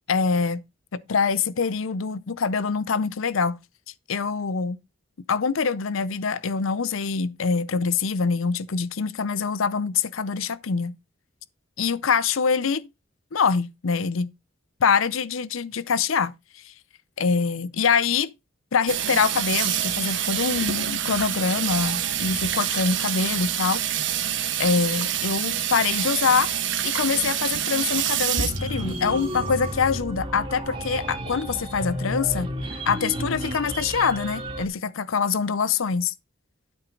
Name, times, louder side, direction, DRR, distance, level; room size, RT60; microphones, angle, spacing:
voice 1, 0.1-0.6 0.9-3.6 4.1-4.8 5.3-10.9 11.8-12.9 13.3-14.3 14.8-16.7 17.2-18.3 18.7-23.8 24.6-26.5 26.8-36.1, left 5 dB, 75° left, 0.6 m, -24 dB
Water tap faucet / Sink (filling or washing), 18.9-29.8, right 10 dB, 60° right, 1.4 m, -27 dB
sound 1, 28.5-34.6, equal, 25° right, 1.7 m, -32 dB
12.0 x 6.0 x 3.8 m
head